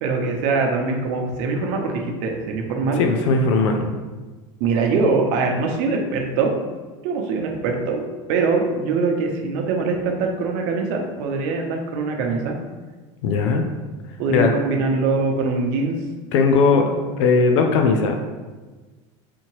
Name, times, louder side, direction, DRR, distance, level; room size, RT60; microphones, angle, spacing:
voice 1, 0.0-3.0 4.6-6.5 7.0-12.5 14.2-16.0, right 4 dB, 70° right, 2 dB, 0.7 m, -23 dB
voice 2, 3.0-3.8 13.2-13.6 14.3-14.5 16.3-18.2, left 4 dB, 85° left, 4 dB, 0.5 m, -18 dB
4.3 x 2.8 x 2.9 m, 1.3 s
supercardioid pair, 120°, 15 cm